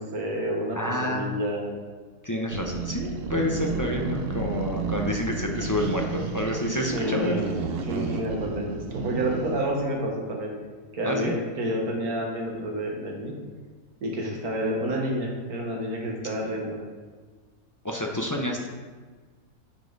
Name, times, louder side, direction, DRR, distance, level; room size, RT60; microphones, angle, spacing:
voice 1, 0.0-1.7 6.9-7.5 7.8-10.6 10.9-13.4 14.0-16.8, equal, 80° right, 0 dB, 1.8 m, -29 dB
voice 2, 0.7-1.2 2.2-7.4 11.0-11.3 17.8-18.7, left 1 dB, 30° left, 0 dB, 0.3 m, -28 dB
sound 1, 2.5-9.7, right 5 dB, 55° right, 0.7 m, -31 dB
9.7 x 5.2 x 3.9 m, 1.5 s
omnidirectional pair, 1.6 m